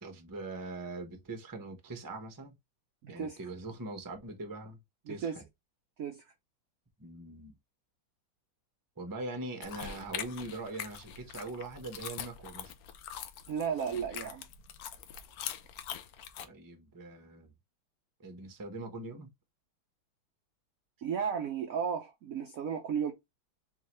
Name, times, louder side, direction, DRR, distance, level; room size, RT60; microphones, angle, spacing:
voice 1, 0.0-2.6 3.1-4.8 5.1-5.4 7.0-7.6 9.0-12.7 16.4-17.5 18.2-19.3, right 2 dB, 25° right, 0.4 m, -42 dB
voice 2, 3.0-3.4 5.1-5.4 6.0-6.2 13.5-14.4 21.0-23.1, right 7 dB, 85° right, 0.7 m, -34 dB
sound 1, 9.6-16.5, left 9 dB, 80° left, 0.8 m, -43 dB
3.8 x 3.7 x 3.0 m
omnidirectional pair, 2.2 m